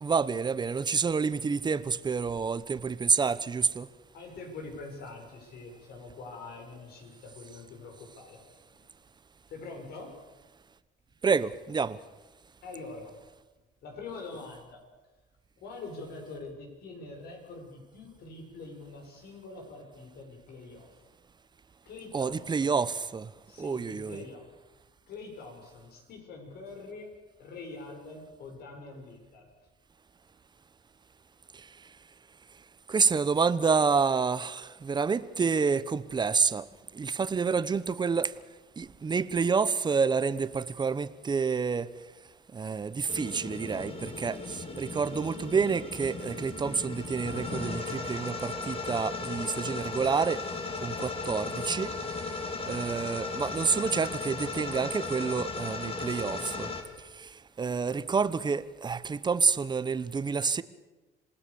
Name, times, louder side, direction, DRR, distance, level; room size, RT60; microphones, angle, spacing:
voice 1, 0.0-3.9 11.2-12.0 22.1-23.3 23.6-24.2 31.5-31.7 32.9-36.7 36.9-38.3 38.8-41.9 42.5-50.4 50.8-51.9 52.7-56.7 57.1-60.6, right 5 dB, 25° right, 1.0 m, -28 dB
voice 2, 4.1-8.8 9.5-10.2 12.6-13.1 13.8-14.8 15.6-20.9 21.9-22.8 23.5-24.5 25.1-27.1 27.4-29.5, left 3 dB, 70° left, 7.0 m, -44 dB
sound 1, 43.1-56.8, left 3 dB, 35° left, 3.2 m, -36 dB
27.0 x 19.0 x 7.1 m
cardioid pair, 110°, 17 cm